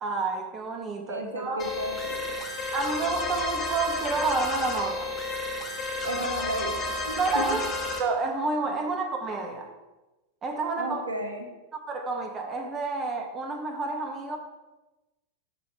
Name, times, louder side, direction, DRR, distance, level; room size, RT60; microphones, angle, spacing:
voice 1, 0.0-1.6 2.7-5.1 7.1-7.7 8.0-9.7 10.4-11.0 11.7-14.4, right 3 dB, 25° right, 1.5 m, -29 dB
voice 2, 1.1-2.2 6.0-6.8 7.0-7.6 8.7-8.8 10.8-11.5, right 1 dB, 75° right, 2.0 m, -33 dB
sound 1, 1.6-8.0, left 2 dB, 25° left, 1.7 m, -32 dB
11.5 x 7.8 x 3.5 m
figure-of-eight pair, 90°, 0 cm